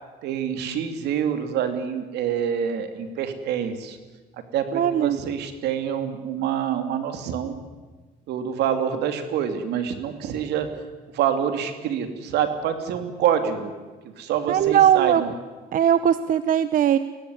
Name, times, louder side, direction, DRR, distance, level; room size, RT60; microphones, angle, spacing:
voice 1, 0.2-4.0 4.5-7.6 8.3-10.7 11.1-13.7 14.0-15.3, right 8 dB, 80° right, 8 dB, 2.8 m, -26 dB
voice 2, 4.7-5.2 14.5-15.2 15.7-17.0, right 10 dB, 55° right, 13 dB, 0.8 m, -19 dB
22.0 x 17.0 x 9.8 m, 1.3 s
cardioid pair, 110°, 17 cm